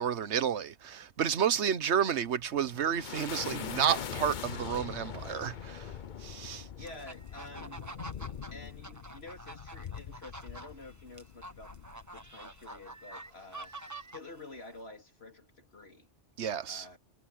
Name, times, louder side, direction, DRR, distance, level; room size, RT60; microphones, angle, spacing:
voice 1, 0.0-5.9 6.2-6.7 16.4-16.9, right 8 dB, 85° right, 1.2 m, -31 dB
sound 1, 2.4-12.9, left 8 dB, 50° left, 0.8 m, -43 dB
voice 2, 6.8-7.8 8.5-11.7 12.1-16.1 16.7-17.0, left 2 dB, 65° left, 4.0 m, -49 dB
sound 2, 6.9-14.7, right 2 dB, 15° right, 1.2 m, -47 dB
omnidirectional pair, 1.1 m